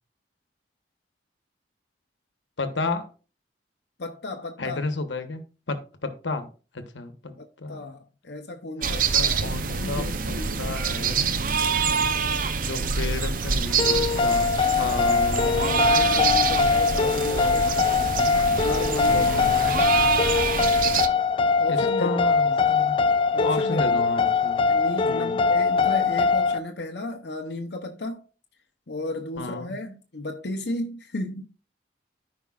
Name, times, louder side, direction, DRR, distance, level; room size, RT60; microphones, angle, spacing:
voice 1, 2.6-3.1 4.6-5.4 5.7-6.5 6.7-7.9 8.8-11.4 12.6-16.0 16.7-17.6 17.9-18.1 19.0-19.9 21.7-23.0 23.4-24.6 25.0-25.4 29.4-29.7, left 3 dB, 85° left, 1.2 m, -33 dB
voice 2, 4.0-4.8 7.7-10.9 15.4-17.8 18.6-19.3 21.6-22.2 22.5-22.6 23.3-24.0 24.7-28.2 28.9-31.5, left 2 dB, 65° left, 0.8 m, -34 dB
sound 1, 8.8-21.1, right 5 dB, 50° right, 0.7 m, -26 dB
sound 2, 12.9-14.2 14.6-18.0 18.3-20.3, right 1 dB, 5° right, 1.8 m, -45 dB
sound 3, 13.8-26.6, left 5 dB, 30° left, 0.3 m, -22 dB
13.5 x 5.2 x 2.4 m
head